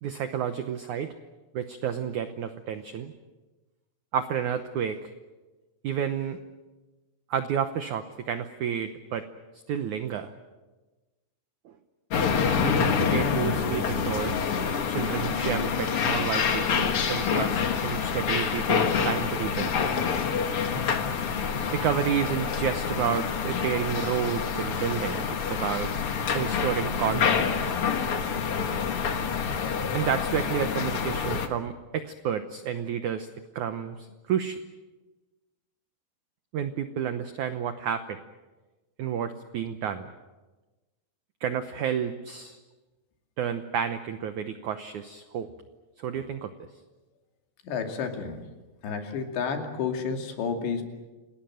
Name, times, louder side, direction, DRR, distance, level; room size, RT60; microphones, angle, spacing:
voice 1, 0.0-1.1 1.5-3.1 4.1-5.1 5.8-6.4 7.3-9.3 9.7-10.3 11.7-11.8 12.6-14.5 14.9-19.7 21.7-25.9 26.3-27.8 29.9-33.3 33.6-34.6 36.5-38.2 39.0-40.1 41.4-42.6 43.4-45.5 46.0-46.5, right 8 dB, 85° right, 9 dB, 1.7 m, -30 dB
sound 1, 12.1-31.5, left 6 dB, 55° left, 1.6 m, -27 dB
voice 2, 47.6-48.4 48.8-50.8, left 6 dB, 85° left, 4 dB, 4.8 m, -30 dB
28.5 x 18.5 x 9.1 m, 1.2 s
omnidirectional pair, 4.9 m